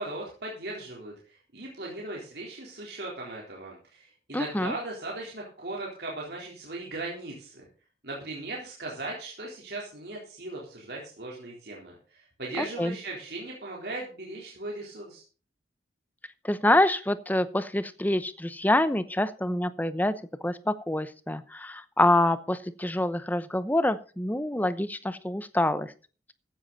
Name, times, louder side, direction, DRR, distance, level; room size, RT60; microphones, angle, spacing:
voice 1, 0.0-7.6 8.0-15.2, right 2 dB, 60° right, -3 dB, 3.9 m, -38 dB
voice 2, 4.3-4.7 12.6-12.9 16.4-20.1 20.4-25.9, left 1 dB, 10° left, 14 dB, 0.8 m, -26 dB
15.0 x 10.5 x 4.1 m, 0.36 s
head